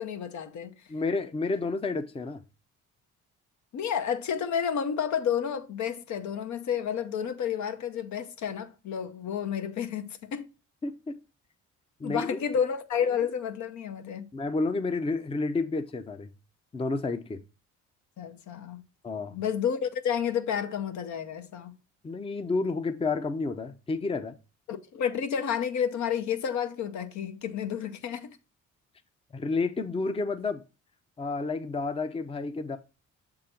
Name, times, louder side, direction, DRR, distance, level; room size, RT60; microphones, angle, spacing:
voice 1, 0.0-0.7 3.7-10.5 12.0-14.3 18.2-18.8 19.3-21.7 24.7-28.4, left 8 dB, 70° left, 0.8 m, -30 dB
voice 2, 0.9-2.4 10.8-11.1 12.0-12.3 14.3-16.3 16.7-17.4 19.0-19.4 22.0-24.4 29.3-30.6 31.2-32.8, left 3 dB, 20° left, 0.6 m, -30 dB
6.7 x 3.9 x 4.3 m
cardioid pair, 90°, 30 cm